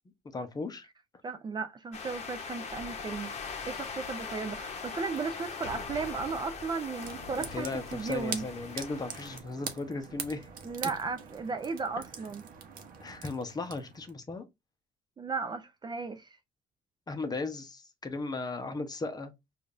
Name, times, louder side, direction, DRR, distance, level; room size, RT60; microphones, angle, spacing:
voice 1, 0.3-0.9 7.4-10.5 13.0-14.4 17.1-19.3, left 3 dB, 25° left, 0.8 m, -36 dB
voice 2, 1.2-3.3 3.7-8.4 10.6-12.4 15.2-16.4, right 4 dB, 25° right, 0.4 m, -35 dB
sound 1, 1.9-9.4, left 5 dB, 40° left, 0.9 m, -41 dB
sound 2, 7.0-14.1, right 6 dB, 55° right, 0.8 m, -43 dB
5.0 x 2.5 x 2.5 m
cardioid pair, 110°, 17 cm